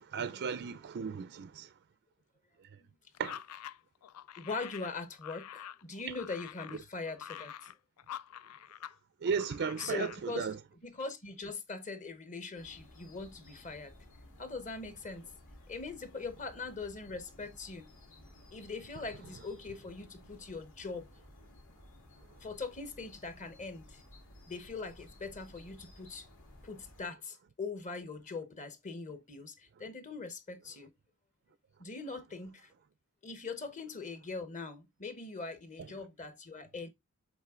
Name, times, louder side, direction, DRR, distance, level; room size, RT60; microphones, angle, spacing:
voice 1, 0.0-1.7 3.2-3.4 9.2-10.6 35.8-35.9, right 6 dB, 50° right, 0.4 m, -35 dB
sound 1, 3.2-9.0 9.3-10.2, left 10 dB, 80° left, 0.4 m, -47 dB
voice 2, 4.4-7.5 9.8-10.5 10.8-13.9 14.4-15.3 15.7-17.9 18.5-21.1 22.4-24.0 24.5-26.3 26.6-30.9 31.8-32.7 33.2-36.9, left 4 dB, 35° left, 1.0 m, -41 dB
sound 2, 12.6-27.1, left 1 dB, 60° left, 2.7 m, -56 dB
7.4 x 3.6 x 3.6 m
head